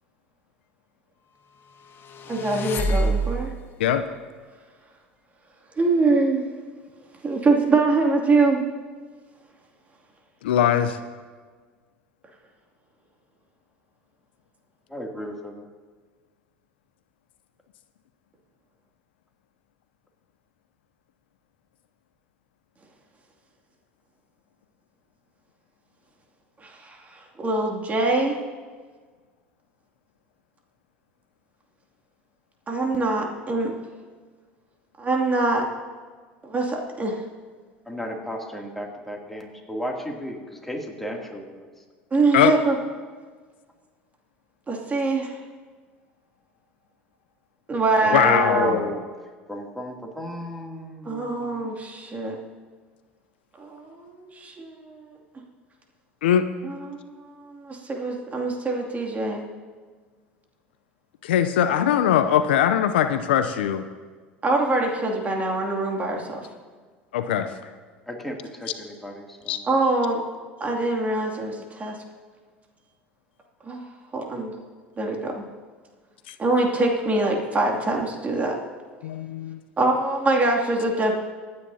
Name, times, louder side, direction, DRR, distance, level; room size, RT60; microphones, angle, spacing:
sound 1, 1.9-3.7, right 2 dB, 40° left, 1.3 m, -26 dB
voice 1, 2.3-3.5 5.8-6.4 7.2-8.6 26.6-28.4 32.7-33.7 35.0-35.6 36.4-37.2 42.1-42.8 44.7-45.4 47.7-48.8 51.0-52.4 53.6-55.2 56.6-59.5 64.4-66.5 69.7-70.2 70.6-72.0 73.6-73.8 74.1-74.5 75.0-75.5 76.4-78.6 79.8-81.1, right 3 dB, 25° right, 0 dB, 2.5 m, -24 dB
voice 2, 10.4-11.0 42.3-42.5 48.1-48.9 56.2-56.5 61.2-63.8 67.1-67.5 69.5-69.6 76.3-76.4 79.0-79.6, left 10 dB, 75° left, 10 dB, 0.6 m, -21 dB
voice 3, 14.9-15.7 37.9-41.7 48.0-49.0 49.5-51.6 61.7-61.8 68.1-69.6, equal, 5° left, 0 dB, 2.7 m, -33 dB
25.0 x 9.8 x 2.8 m, 1.5 s
hypercardioid pair, 75°, 6 cm